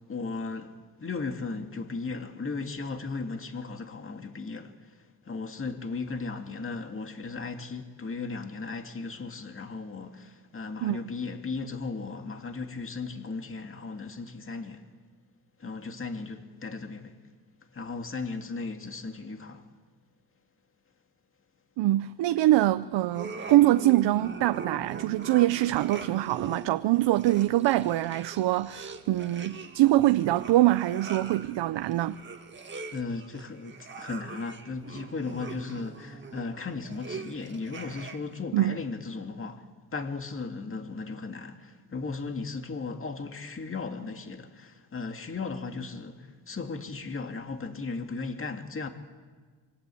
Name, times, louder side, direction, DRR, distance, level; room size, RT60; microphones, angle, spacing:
voice 1, 0.1-14.9 15.6-17.2 17.7-19.7 32.9-39.7 39.9-48.9, left 4 dB, 30° left, 2.2 m, -36 dB
voice 2, 21.8-32.2 38.5-38.8, right 15 dB, 80° right, 0.7 m, -24 dB
sound 1, 23.0-38.4, right 4 dB, 25° right, 2.1 m, -42 dB
27.0 x 24.0 x 8.5 m
cardioid pair, 100°, 42 cm